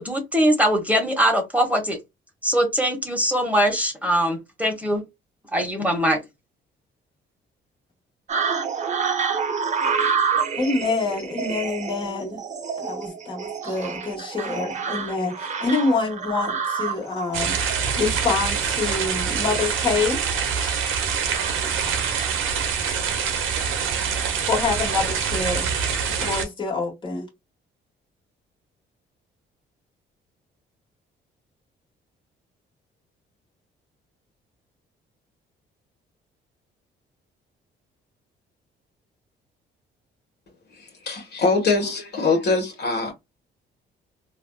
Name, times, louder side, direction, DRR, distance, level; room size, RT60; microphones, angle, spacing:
voice 1, 0.0-2.0 2.4-5.0 5.5-6.2, equal, 5° right, 1.1 m, -22 dB
sound 1, 8.3-22.5, right 6 dB, 35° right, 0.8 m, -29 dB
voice 2, 10.5-12.4 12.8-17.5 18.0-20.2 24.5-25.7 26.2-27.3, left 4 dB, 25° left, 1.4 m, -26 dB
sound 2, 17.3-26.4, right 7 dB, 90° right, 0.9 m, -25 dB
voice 3, 40.7-43.1, left 3 dB, 55° left, 1.3 m, -23 dB
3.3 x 2.5 x 2.3 m
cardioid pair, 90°, 20 cm